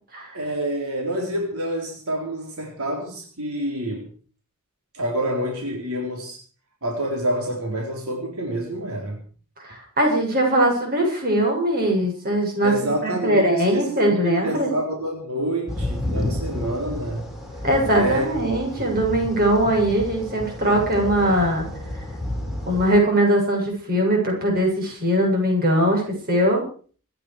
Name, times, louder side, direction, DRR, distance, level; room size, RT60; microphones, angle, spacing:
voice 1, 0.3-4.1 4.9-6.4 6.8-9.2 12.6-17.4 17.9-18.3 18.6-19.0, right 1 dB, 80° right, 0 dB, 4.0 m, -27 dB
voice 2, 9.6-14.7 17.6-21.7 22.7-26.6, right 1 dB, 45° right, 0 dB, 7.7 m, -21 dB
sound 1, 15.7-23.0, left 1 dB, ahead, 5.5 m, -31 dB
26.5 x 10.5 x 5.0 m, 0.42 s
head